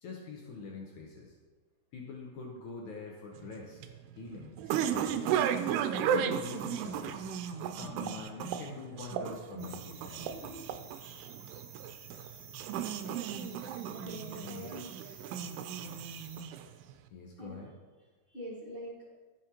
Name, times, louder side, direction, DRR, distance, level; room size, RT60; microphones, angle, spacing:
voice 1, 0.0-1.4 1.9-3.8 4.2-5.5 5.9-10.5 14.3-14.7 17.1-17.7, left 4 dB, 75° left, -1 dB, 1.8 m, -44 dB
sound 1, 3.4-16.9, right 8 dB, 90° right, 2.6 m, -35 dB
sound 2, 9.6-16.4, right 6 dB, 65° right, 1.7 m, -52 dB
voice 2, 10.3-10.8 13.9-14.9 17.4-17.6 18.3-19.1, equal, 55° left, -7 dB, 0.6 m, -45 dB
15.0 x 6.3 x 2.9 m, 1.3 s
omnidirectional pair, 4.6 m